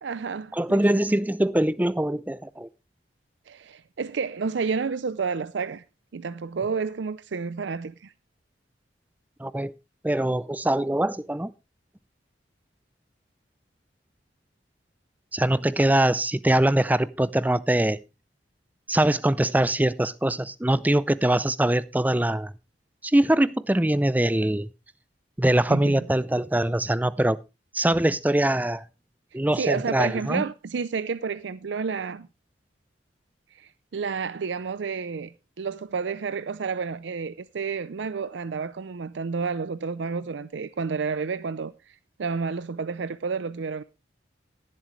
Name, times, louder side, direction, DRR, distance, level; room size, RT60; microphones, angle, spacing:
voice 1, 0.0-1.0 3.5-5.8 6.1-8.1 25.7-26.0 29.6-32.3 33.5-41.7 42.2-43.8, right 5 dB, 75° right, 0.5 m, -30 dB
voice 2, 0.5-2.7 9.4-9.7 10.0-11.5 15.3-18.0 18.9-22.5 23.0-24.7 25.4-27.4 27.7-28.8 29.3-30.4, right 1 dB, 10° right, 0.5 m, -23 dB
18.5 x 7.7 x 3.1 m
head